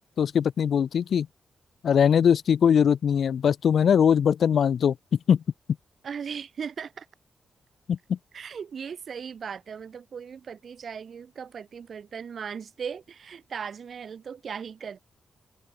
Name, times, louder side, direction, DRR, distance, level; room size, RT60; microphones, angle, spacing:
voice 1, 0.2-1.3 1.8-4.9 5.3-5.4 7.9-8.2, left 8 dB, 55° left, 0.5 m, -21 dB
voice 2, 6.0-7.1 8.3-15.0, right 7 dB, 45° right, 3.0 m, -38 dB
wide cardioid pair, 180°, 0 cm